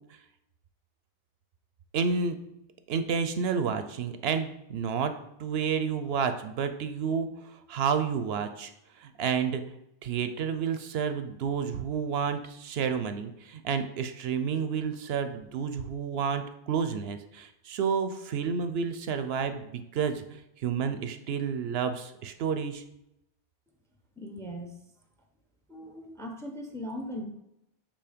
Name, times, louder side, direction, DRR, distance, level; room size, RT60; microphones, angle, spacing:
voice 1, 1.9-2.4 2.9-5.1 5.4-8.7 9.0-9.6 10.0-20.2 20.6-22.8, right 6 dB, 75° right, 9 dB, 0.8 m, -30 dB
voice 2, 24.2-24.8 25.7-27.2, equal, 5° left, 3 dB, 0.7 m, -39 dB
6.9 x 3.0 x 5.0 m, 0.82 s
omnidirectional pair, 1.1 m